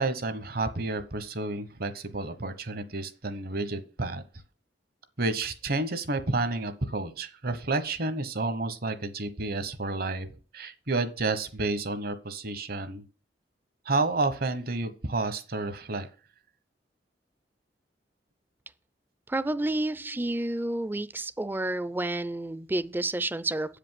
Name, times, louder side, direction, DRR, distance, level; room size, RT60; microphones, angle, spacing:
voice 1, 0.0-4.2 5.2-10.3 10.5-13.0 13.8-16.1, right 2 dB, 55° right, 1.0 m, -30 dB
voice 2, 19.3-23.8, right 2 dB, 10° right, 0.4 m, -30 dB
8.2 x 5.1 x 7.6 m
head